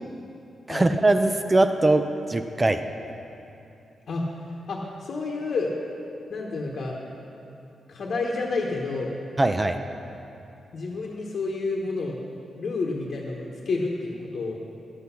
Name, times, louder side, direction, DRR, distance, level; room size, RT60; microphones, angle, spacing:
voice 1, 0.7-2.8 9.4-9.8, right 2 dB, 15° right, 8 dB, 0.4 m, -21 dB
voice 2, 4.7-5.7 6.3-7.0 7.9-9.1 10.7-12.2 12.6-14.5, left 3 dB, 55° left, -3 dB, 1.1 m, -29 dB
12.0 x 8.0 x 5.7 m, 2.8 s
wide cardioid pair, 170°, 0 cm